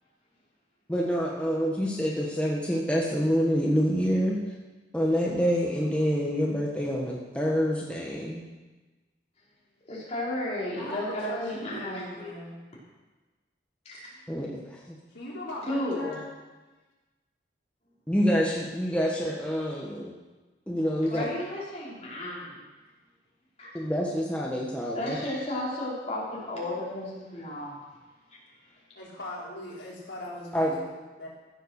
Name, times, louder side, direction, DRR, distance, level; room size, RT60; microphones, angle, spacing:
voice 1, 0.9-4.4 4.9-8.4 14.3-14.8 18.1-20.1 20.7-21.2 23.7-25.2 30.5-30.8, equal, 5° left, -3 dB, 1.4 m, -27 dB
voice 2, 9.9-12.3 13.8-14.1 15.7-16.2 21.1-22.6 23.6-23.8 24.9-27.8, left 1 dB, 35° left, -7 dB, 4.8 m, -33 dB
voice 3, 10.7-12.6 15.1-16.3 28.9-31.3, left 1 dB, 70° left, -5 dB, 4.3 m, -40 dB
15.5 x 7.9 x 6.5 m, 1.2 s
head